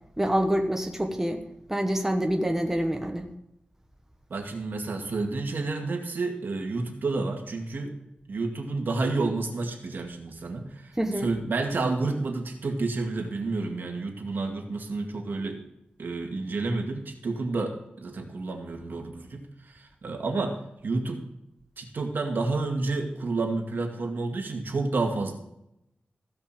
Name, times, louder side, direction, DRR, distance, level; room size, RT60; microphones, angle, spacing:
voice 1, 0.2-3.3 11.0-11.3, equal, 10° right, 4 dB, 1.1 m, -26 dB
voice 2, 4.3-7.9 8.3-15.6 16.0-20.6 20.8-21.2 21.8-25.3, right 3 dB, 75° right, 2 dB, 2.1 m, -30 dB
16.0 x 5.5 x 7.4 m, 0.83 s
wide cardioid pair, 120°, 3 cm